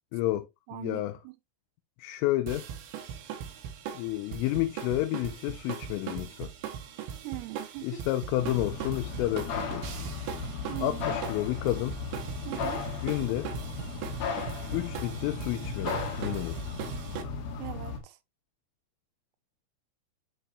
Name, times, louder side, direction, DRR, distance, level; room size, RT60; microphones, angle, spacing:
voice 1, 0.1-1.2 2.0-2.7 3.9-6.5 7.8-9.9 10.8-12.0 13.0-13.5 14.7-16.6, left 16 dB, 80° left, 3.2 m, -30 dB
voice 2, 0.7-1.4 7.2-8.0 10.7-11.2 12.5-12.9 17.6-18.2, right 18 dB, 90° right, 3.5 m, -40 dB
sound 1, 2.5-17.2, right 8 dB, 70° right, 3.5 m, -40 dB
sound 2, 8.4-18.0, left 4 dB, 55° left, 3.2 m, -36 dB
9.9 x 4.8 x 3.2 m
omnidirectional pair, 5.9 m